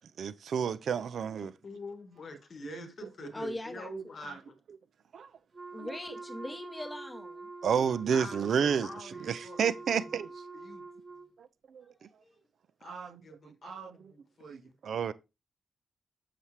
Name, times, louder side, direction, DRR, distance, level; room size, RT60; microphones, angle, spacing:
voice 1, 0.2-1.5 2.6-3.5 3.8-4.4 5.1-5.3 5.8-6.0 7.6-10.3 12.8-13.2 13.5-14.1 14.4-15.1, right 7 dB, 60° right, 0.4 m, -32 dB
voice 2, 1.6-4.6 8.1-9.8 10.2-10.8 12.8-14.7, left 5 dB, 45° left, 1.0 m, -47 dB
voice 3, 3.3-4.4 5.7-7.5 12.2-12.4, left 1 dB, 10° left, 0.8 m, -41 dB
Wind instrument woodwind instrument, 5.5-11.3, right 3 dB, 30° right, 1.1 m, -46 dB
6.9 x 5.7 x 3.1 m
wide cardioid pair, 175°, 0 cm